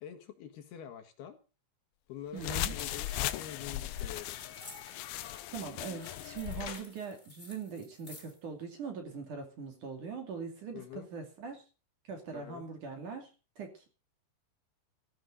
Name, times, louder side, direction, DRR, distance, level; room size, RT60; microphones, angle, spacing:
voice 1, 0.0-1.4 2.1-4.4 10.7-11.1 12.3-12.6, left 9 dB, 70° left, 7 dB, 3.1 m, -46 dB
sound 1, 2.3-8.4, left 2 dB, 10° left, 4.1 m, -53 dB
voice 2, 2.3-2.8 5.5-11.6 12.0-13.3 13.6-13.9, right 5 dB, 50° right, 4 dB, 3.6 m, -41 dB
sound 2, 2.4-6.8, left 14 dB, 85° left, 2.1 m, -38 dB
16.5 x 14.0 x 3.9 m, 0.34 s
omnidirectional pair, 5.3 m